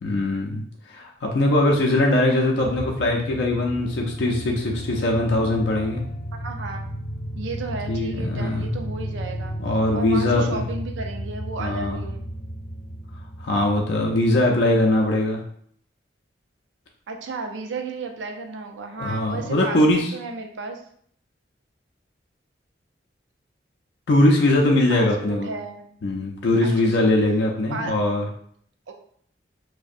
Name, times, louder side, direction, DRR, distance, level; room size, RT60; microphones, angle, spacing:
voice 1, 0.0-6.0 7.9-8.7 9.6-10.7 11.6-12.0 13.4-15.4 19.0-20.1 24.1-25.5 26.0-28.3, left 1 dB, 70° left, -1 dB, 0.4 m, -21 dB
sound 1, 2.5-14.8, equal, 45° left, 0.7 m, -33 dB
voice 2, 6.3-6.9 7.3-9.6 9.9-12.2 17.1-20.8 24.9-25.9 26.6-27.1 27.7-27.9 28.9-29.0, right 3 dB, 85° right, 4 dB, 0.4 m, -34 dB
2.6 x 2.1 x 2.4 m, 0.63 s
head